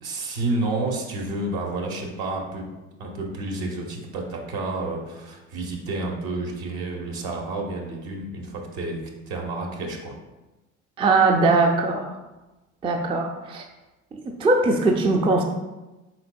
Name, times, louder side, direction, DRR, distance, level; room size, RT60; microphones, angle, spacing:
voice 1, 0.0-2.7 3.0-10.1, right 2 dB, 65° right, 0 dB, 1.0 m, -30 dB
voice 2, 11.0-12.2 12.8-13.6 14.1-15.4, right 3 dB, 15° right, 3 dB, 0.3 m, -21 dB
4.3 x 3.8 x 2.2 m, 1.1 s
hypercardioid pair, 70°, 38 cm